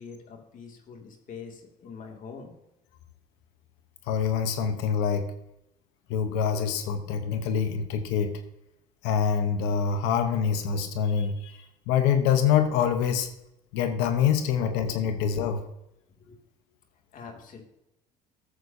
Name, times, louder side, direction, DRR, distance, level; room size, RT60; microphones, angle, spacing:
voice 1, 0.0-2.5 16.3-16.4 17.1-17.6, left 5 dB, 50° left, 3 dB, 2.6 m, -44 dB
voice 2, 4.1-5.3 6.1-8.4 9.0-13.3 13.7-15.6, left 7 dB, 80° left, 8 dB, 1.1 m, -25 dB
13.0 x 8.0 x 2.8 m, 0.83 s
supercardioid pair, 75°, 17 cm